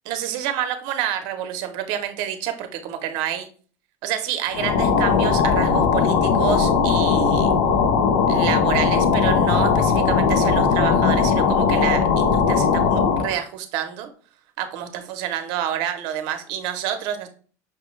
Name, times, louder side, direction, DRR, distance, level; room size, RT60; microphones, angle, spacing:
voice 1, 0.0-3.5 4.0-7.5 8.3-14.1 14.6-17.3, right 10 dB, 60° right, 8 dB, 0.7 m, -28 dB
sound 1, 4.5-13.4, left 5 dB, 85° left, 0.6 m, -19 dB
5.6 x 2.2 x 3.1 m, 0.42 s
supercardioid pair, 145°, 8 cm